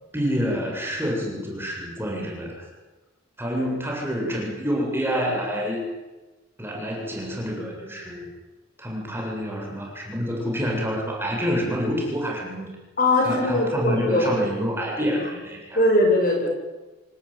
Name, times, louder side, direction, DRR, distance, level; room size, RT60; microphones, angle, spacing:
voice 1, 0.1-2.7 3.4-5.8 6.6-8.2 8.8-12.7 13.2-15.8, equal, 10° right, -1 dB, 7.8 m, -27 dB
voice 2, 13.0-14.4 15.7-16.5, left 1 dB, 45° left, 1 dB, 6.6 m, -20 dB
26.5 x 19.5 x 9.0 m, 1.2 s
head